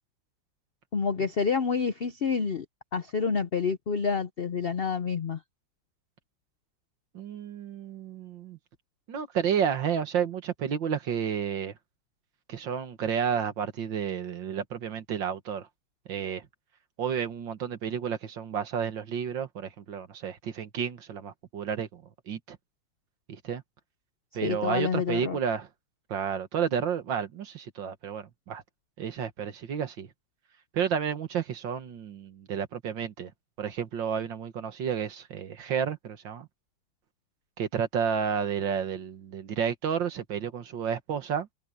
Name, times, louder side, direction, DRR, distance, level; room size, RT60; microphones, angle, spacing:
voice 1, 0.9-2.6 2.9-5.4 24.4-25.4, left 5 dB, 75° left, 0.5 m, -28 dB
voice 2, 7.1-8.6 9.1-11.7 12.5-15.7 16.1-16.5 17.0-22.6 23.3-23.6 24.3-25.7 26.1-28.6 29.0-30.1 30.7-33.3 33.6-36.5 37.6-41.5, right 7 dB, 70° right, 2.2 m, -31 dB
omnidirectional pair, 2.1 m